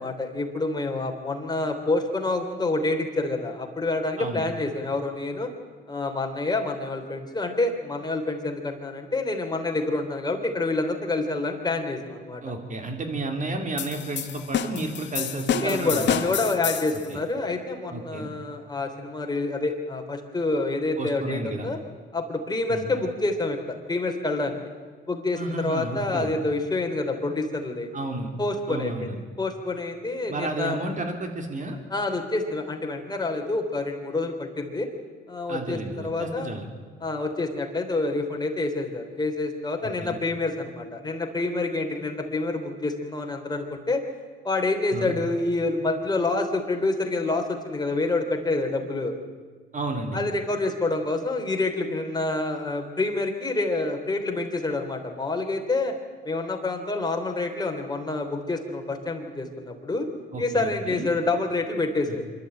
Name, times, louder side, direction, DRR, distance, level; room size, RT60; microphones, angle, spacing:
voice 1, 0.0-5.5 5.9-12.4 15.6-21.8 22.1-24.6 25.1-27.9 28.4-29.1 29.4-30.8 31.9-34.9 35.3-36.5 37.0-44.0 44.4-49.1 50.1-55.9 56.3-60.1 60.4-62.2, left 2 dB, 20° left, 3 dB, 3.4 m, -27 dB
voice 2, 12.4-16.1 17.1-17.2 17.9-18.3 21.0-21.7 22.7-22.9 25.3-26.3 27.9-28.3 28.7-29.2 30.3-31.8 35.5-36.7 39.8-40.2 44.9-45.1 49.7-50.2 60.3-61.1 62.1-62.2, right 2 dB, 40° right, 4 dB, 3.6 m, -32 dB
sound 1, 13.8-17.1, left 9 dB, 65° left, 1.3 m, -29 dB
25.5 x 12.0 x 9.1 m, 1.5 s
cardioid pair, 90°, 20 cm